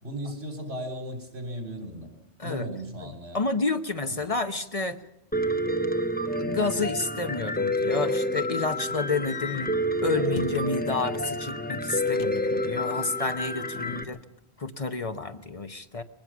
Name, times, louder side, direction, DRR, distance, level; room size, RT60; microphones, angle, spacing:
voice 1, 0.0-2.1 2.4-3.5 4.0-4.3 13.8-14.0, equal, 85° right, 5 dB, 3.7 m, -36 dB
voice 2, 3.0-5.0 6.4-9.8 10.0-14.2 14.6-16.0, left 3 dB, 35° left, 8 dB, 0.9 m, -30 dB
Piano, 5.3-14.0, equal, 10° left, 0.8 m, -28 dB
sound 1, 9.3-11.0 12.0-13.1 13.4-14.2, left 8 dB, 75° left, 1.1 m, -43 dB
22.0 x 19.0 x 6.1 m, 0.88 s
omnidirectional pair, 1.1 m